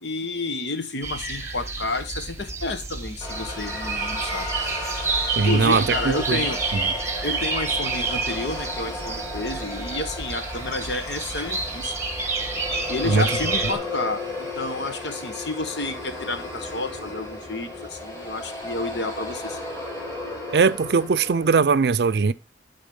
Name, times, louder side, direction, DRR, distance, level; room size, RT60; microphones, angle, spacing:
voice 1, 0.0-4.5 5.4-6.6 7.2-11.9 12.9-19.6, left 2 dB, 80° left, 1.2 m, -30 dB
sound 1, 1.0-13.7, right 3 dB, 15° right, 1.1 m, -29 dB
sound 2, 3.2-21.5, left 1 dB, 15° left, 2.9 m, -34 dB
voice 2, 5.4-6.4 6.7-6.9 13.0-13.3 20.5-22.3, right 5 dB, 70° right, 0.4 m, -20 dB
10.5 x 4.2 x 5.3 m
head